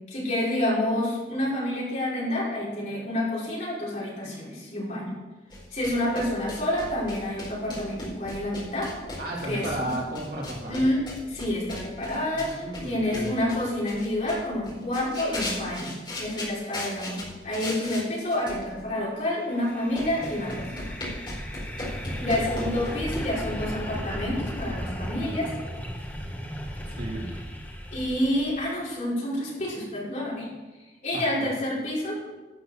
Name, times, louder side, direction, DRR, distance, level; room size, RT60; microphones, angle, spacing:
voice 1, 0.1-5.1 5.7-8.9 9.5-9.9 10.7-17.2 17.4-20.9 22.2-25.6 27.9-30.5 31.0-32.3, left 1 dB, 45° left, -7 dB, 5.0 m, -28 dB
sound 1, 5.5-18.0 18.3-18.8 19.6-19.7 19.9-23.3, left 1 dB, 25° left, 4.7 m, -38 dB
voice 2, 9.2-10.9 12.3-13.4 22.2-22.4 26.9-27.3 31.1-31.5, right 1 dB, 55° right, -3 dB, 3.0 m, -34 dB
sound 2, 19.5-28.7, equal, 10° left, 1.4 m, -35 dB
12.5 x 6.8 x 7.3 m, 1.2 s
head